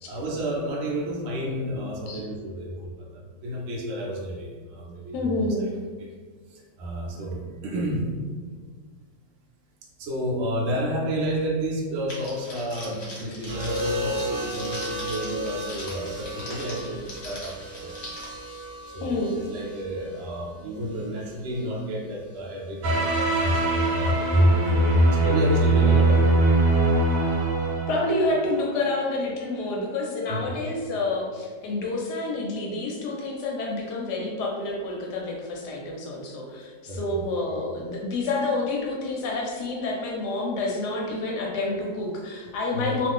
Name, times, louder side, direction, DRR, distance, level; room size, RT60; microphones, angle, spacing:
voice 1, 0.1-5.3 5.6-5.7 6.0-6.1 6.8-8.0 10.0-17.9 18.9-26.5 30.3-30.5 36.8-37.3 42.7-43.0, right 1 dB, 65° right, -3 dB, 0.6 m, -31 dB
voice 2, 5.1-5.7 19.0-19.3 27.9-43.1, left 2 dB, 75° left, -1 dB, 1.1 m, -28 dB
Crackle, 12.1-18.2, left 1 dB, 45° left, 1.0 m, -41 dB
sound 1, 13.5-21.6 22.8-23.2, equal, 25° right, 0.4 m, -34 dB
sound 2, 22.8-28.6, right 2 dB, 85° right, 1.3 m, -21 dB
2.6 x 2.4 x 3.5 m, 1.6 s
omnidirectional pair, 1.9 m